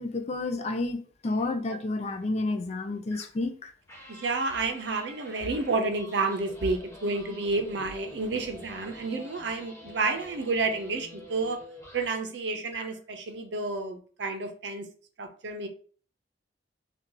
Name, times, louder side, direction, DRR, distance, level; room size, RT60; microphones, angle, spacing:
voice 1, 0.0-3.7, left 2 dB, 35° left, 0.4 m, -30 dB
sound 1, 1.3-1.5 3.1-3.5 3.9-12.3 12.7-13.0, left 1 dB, 15° left, 1.0 m, -48 dB
voice 2, 4.1-11.6 11.9-14.9 15.2-15.7, right 3 dB, 70° right, 0.6 m, -30 dB
2.9 x 2.4 x 3.7 m
head